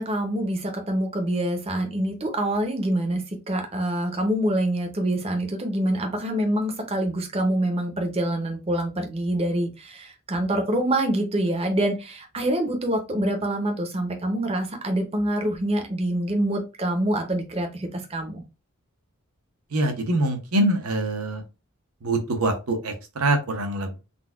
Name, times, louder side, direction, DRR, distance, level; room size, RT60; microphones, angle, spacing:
voice 1, 0.0-18.4, right 1 dB, 30° right, 4 dB, 0.6 m, -26 dB
voice 2, 19.7-21.4 22.0-24.0, right 1 dB, 85° right, 4 dB, 0.8 m, -24 dB
3.9 x 2.2 x 2.3 m, 0.28 s
head